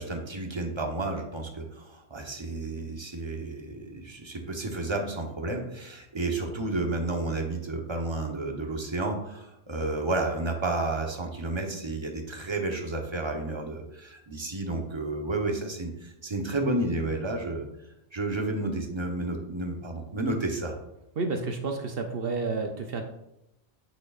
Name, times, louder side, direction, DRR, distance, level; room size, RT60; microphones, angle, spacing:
voice 1, 0.0-17.7 18.1-20.8, right 2 dB, 25° right, 2 dB, 0.9 m, -31 dB
voice 2, 21.2-23.0, right 3 dB, 60° right, 4 dB, 0.8 m, -30 dB
8.3 x 6.3 x 2.4 m, 0.87 s
omnidirectional pair, 1.2 m